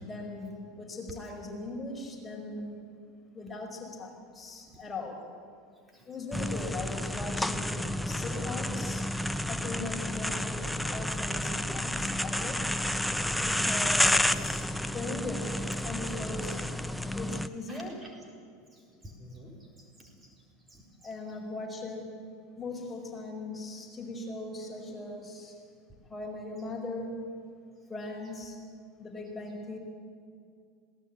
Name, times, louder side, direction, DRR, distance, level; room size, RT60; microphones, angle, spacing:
voice 1, 0.0-2.8 3.3-5.2 6.0-9.1 9.5-12.7 13.4-16.7 17.1-17.9 21.0-22.1 22.6-25.6 26.1-27.2 27.9-28.6 29.0-29.8, left 2 dB, 20° left, 1 dB, 5.2 m, -39 dB
sound 1, 6.3-17.5, left 1 dB, 5° left, 0.9 m, -30 dB
voice 2, 17.7-18.1 18.7-20.4 20.7-20.8, equal, 15° right, 0 dB, 4.2 m, -51 dB
20.5 x 18.0 x 8.6 m, 2.3 s
hypercardioid pair, 85°, 0 cm